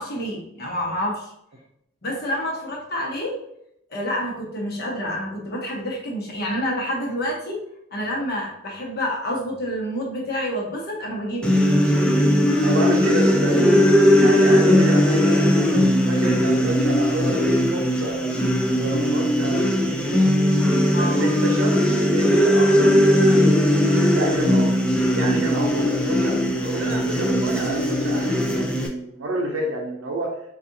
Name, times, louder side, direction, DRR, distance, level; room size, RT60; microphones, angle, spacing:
voice 1, 0.0-1.3 2.0-3.4 3.9-7.6 7.9-11.5 20.9-21.4, equal, 55° left, -1 dB, 1.0 m, -28 dB
sound 1, 11.4-28.9, equal, 5° left, 0.4 m, -19 dB
voice 2, 12.6-13.6 14.2-18.3 18.8-20.2 21.0-21.8 22.1-23.5 24.1-24.7 25.1-30.4, right 1 dB, 80° right, -3 dB, 0.6 m, -29 dB
4.1 x 2.5 x 2.7 m, 0.76 s
head